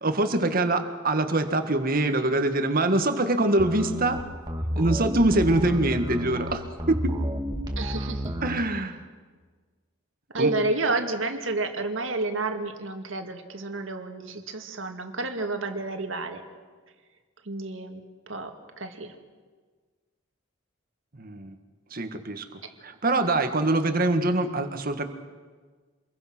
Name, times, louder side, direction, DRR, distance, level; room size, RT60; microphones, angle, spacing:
voice 1, 0.0-4.3 4.7-7.2 8.4-9.0 10.4-10.5 21.1-21.5 21.9-25.0, right 2 dB, 45° right, 7 dB, 1.7 m, -24 dB
sound 1, 3.6-8.6, equal, 20° right, 2.2 m, -31 dB
voice 2, 7.8-8.3 10.3-16.4 17.5-18.0 18.3-19.2 22.6-22.7, right 2 dB, 75° right, 5 dB, 2.2 m, -30 dB
26.5 x 22.0 x 6.1 m, 1.5 s
head